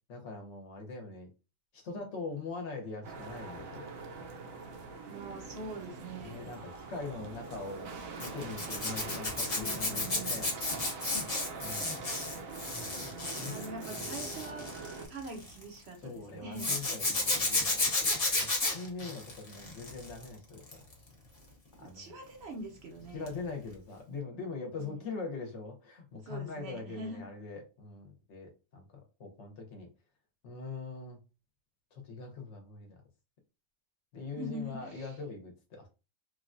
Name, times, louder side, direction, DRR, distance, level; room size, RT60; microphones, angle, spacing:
voice 1, 0.1-1.3 1.7-3.9 6.2-7.9 8.1-10.5 11.6-12.0 13.1-13.5 16.0-20.8 21.8-22.2 23.1-28.9 29.2-29.9 30.4-31.2 31.9-33.0 34.1-35.9, left 4 dB, 65° left, 1.0 m, -42 dB
sound 1, 3.0-15.1, right 4 dB, 80° right, 1.0 m, -44 dB
voice 2, 5.1-6.4 9.5-10.4 13.3-14.7 15.1-16.8 21.8-23.3 24.8-25.1 26.2-27.2 34.3-35.1, right 2 dB, 60° right, 0.7 m, -44 dB
Zipper (clothing), 8.2-15.6 16.6-20.2 20.6-20.9 23.3-23.4 23.7-23.8, left 2 dB, 35° left, 0.7 m, -32 dB
3.1 x 2.2 x 2.5 m
omnidirectional pair, 1.4 m